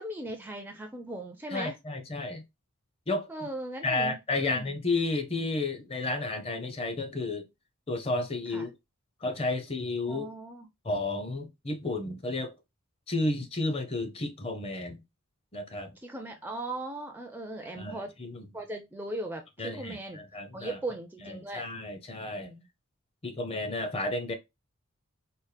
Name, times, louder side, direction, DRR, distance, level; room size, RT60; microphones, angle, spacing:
voice 1, 0.0-1.8 3.3-4.8 8.5-8.7 10.1-10.7 16.0-18.1 18.5-20.2 20.5-21.6 22.4-22.7, right 2 dB, 10° right, 0.4 m, -38 dB
voice 2, 1.5-2.4 3.1-3.5 3.8-7.5 7.9-8.7 9.2-10.3 10.8-12.5 13.1-15.0 15.5-16.0 17.8-18.5 19.6-20.8 21.2-22.5 23.2-24.3, left 2 dB, 25° left, 0.6 m, -32 dB
4.2 x 2.1 x 3.2 m
head